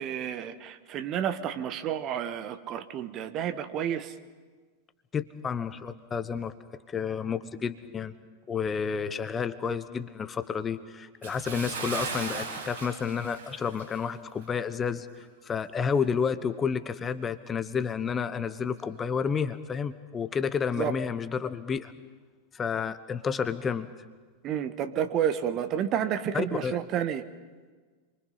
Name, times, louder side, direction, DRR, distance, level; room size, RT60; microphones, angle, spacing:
voice 1, 0.0-4.1 20.8-20.9 24.4-27.2, right 9 dB, 35° right, 10 dB, 1.3 m, -30 dB
voice 2, 5.1-6.5 6.9-8.1 8.5-21.9 22.5-23.9 26.3-26.8, left 6 dB, 20° left, 12 dB, 1.0 m, -30 dB
Bathtub (filling or washing) / Splash splatter, 11.2-14.1 14.4-14.6 15.1-15.2, right 5 dB, 65° right, 7.5 m, -37 dB
27.5 x 24.5 x 5.7 m, 1.4 s
figure-of-eight pair, 90°, 0 cm